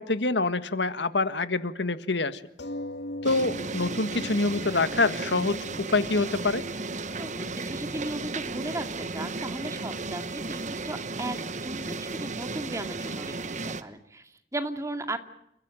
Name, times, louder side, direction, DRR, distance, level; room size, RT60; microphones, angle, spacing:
voice 1, 0.0-2.4 3.2-6.6, left 3 dB, 90° left, 12 dB, 1.6 m, -26 dB
sound 1, 2.6-7.6 8.3-8.4 8.7-8.8, left 1 dB, 70° left, 2.2 m, -41 dB
sound 2, 3.2-13.8, right 3 dB, 45° right, 1.3 m, -34 dB
voice 2, 7.1-15.2, right 1 dB, 20° right, 7 dB, 2.3 m, -36 dB
29.5 x 15.5 x 9.0 m, 0.80 s
head